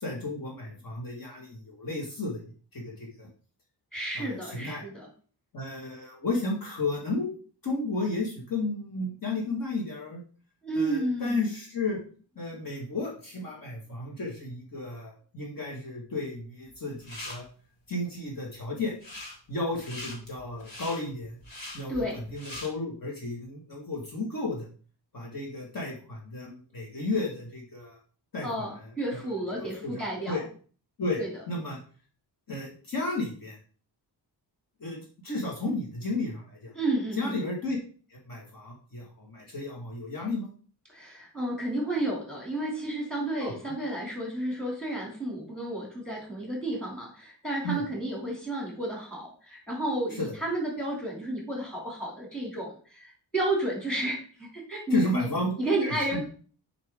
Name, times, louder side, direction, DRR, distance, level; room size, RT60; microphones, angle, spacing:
voice 1, 0.0-2.4 2.7-3.3 4.2-4.8 5.5-7.3 7.6-10.2 10.8-12.0 12.4-17.5 17.9-18.9 19.5-21.4 21.7-24.7 25.1-28.0 28.3-28.9 29.1-29.3 29.6-30.4 31.0-31.8 32.5-33.6 34.8-35.0 35.2-36.7 37.2-37.8 38.1-40.5 43.4-43.7 47.6-47.8 50.1-50.3 54.9-56.2, left 2 dB, 50° left, -2 dB, 2.1 m, -33 dB
voice 2, 3.9-5.1 10.6-11.5 21.9-22.2 28.4-30.4 31.2-31.3 36.7-37.3 40.9-55.3 55.6-56.3, right 1 dB, ahead, -2 dB, 2.9 m, -31 dB
sound 1, 16.7-17.3 18.9-19.4 19.7-22.7, left 1 dB, 75° left, 4.0 m, -41 dB
8.8 x 4.9 x 3.7 m, 0.41 s
wide cardioid pair, 160°, 43 cm